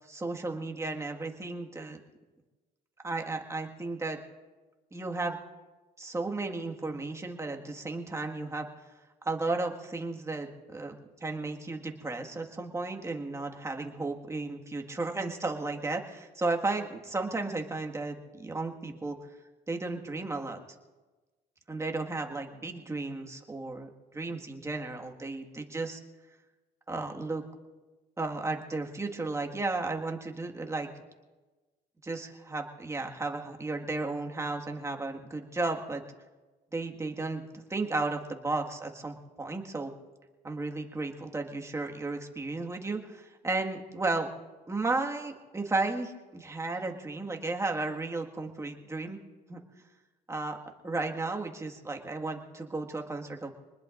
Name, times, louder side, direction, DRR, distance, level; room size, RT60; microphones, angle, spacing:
voice 1, 0.1-2.0 3.0-4.2 4.9-5.4 6.0-8.7 9.2-19.2 19.7-20.6 21.7-26.0 26.9-27.4 28.2-30.9 32.0-36.0 36.7-39.9 40.4-44.3 44.7-49.2 49.5-49.6 50.3-50.6 50.8-53.5, right 3 dB, 15° right, 2 dB, 1.8 m, -34 dB
26.0 x 20.0 x 2.6 m, 1.2 s
cardioid pair, 110°, 17 cm